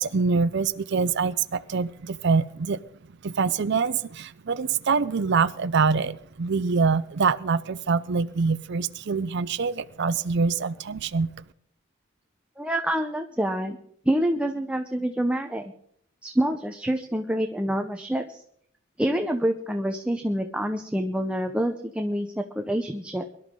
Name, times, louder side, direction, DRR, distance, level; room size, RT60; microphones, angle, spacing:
voice 1, 0.0-2.8 3.2-11.3, right 5 dB, 55° right, 12 dB, 0.5 m, -25 dB
voice 2, 12.6-13.8 14.0-15.7 16.2-18.4 19.0-23.3, right 1 dB, 5° right, 5 dB, 0.7 m, -27 dB
23.0 x 12.0 x 3.8 m, 0.65 s
head